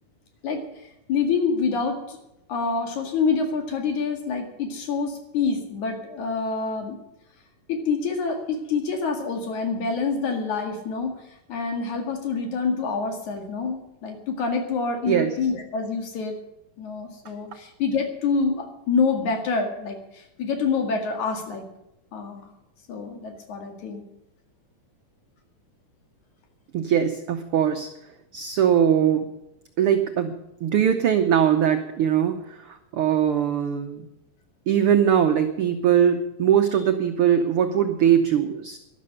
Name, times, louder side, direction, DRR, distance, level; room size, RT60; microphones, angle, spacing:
voice 1, 1.1-2.2 2.5-7.0 7.7-11.2 11.5-16.4 16.8-21.6 22.1-22.5 22.9-24.0, left 4 dB, 70° left, 4 dB, 3.4 m, -26 dB
voice 2, 26.7-27.9 28.3-29.3 29.8-30.3 30.6-34.0 34.7-38.8, right 9 dB, 85° right, 6 dB, 1.2 m, -21 dB
12.0 x 11.5 x 6.7 m, 0.87 s
omnidirectional pair, 3.6 m